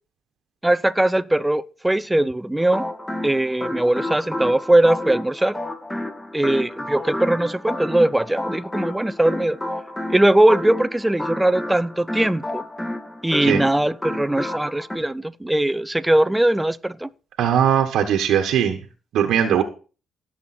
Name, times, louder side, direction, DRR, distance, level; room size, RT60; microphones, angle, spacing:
voice 1, 0.6-2.9 3.2-5.6 6.3-9.6 10.1-12.6 13.2-17.1, right 1 dB, 10° right, 0.7 m, -20 dB
sound 1, 2.6-15.0, left 1 dB, 15° left, 2.2 m, -30 dB
voice 2, 17.4-18.8 19.1-19.6, right 9 dB, 80° right, 1.4 m, -19 dB
17.0 x 7.3 x 4.4 m
cardioid pair, 90°, 0 cm